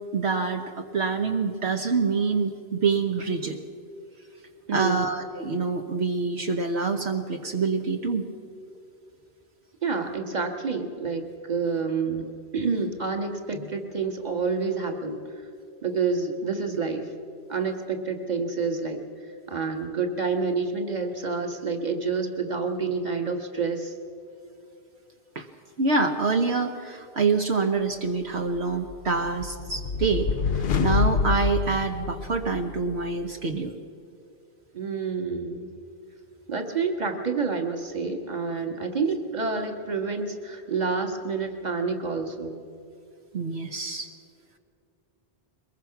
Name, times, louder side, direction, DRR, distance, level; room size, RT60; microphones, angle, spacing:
voice 1, 0.1-3.6 4.7-8.2 25.3-25.5 25.8-33.7 43.3-44.1, right 4 dB, 75° right, 4 dB, 1.3 m, -26 dB
voice 2, 4.7-5.0 9.8-12.3 12.5-15.2 15.8-17.1 17.5-19.0 19.5-23.9 34.7-35.7 36.5-42.6, right 4 dB, 40° right, 4 dB, 1.8 m, -28 dB
sound 1, 28.9-32.8, left 6 dB, 65° left, 0.9 m, -27 dB
22.5 x 21.0 x 5.9 m, 2.5 s
omnidirectional pair, 1.1 m